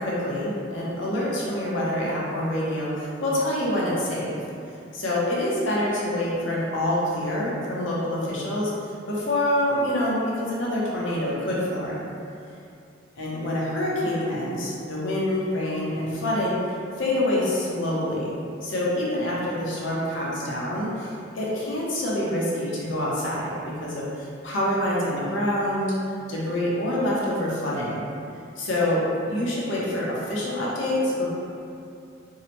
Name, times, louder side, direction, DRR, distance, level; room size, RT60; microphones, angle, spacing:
voice 1, 0.0-4.4 4.9-8.7 9.1-12.1 13.2-18.3 18.6-25.9 26.3-28.1 28.6-31.3, left 1 dB, 75° left, -6 dB, 0.6 m, -26 dB
2.7 x 2.1 x 2.8 m, 2.6 s
head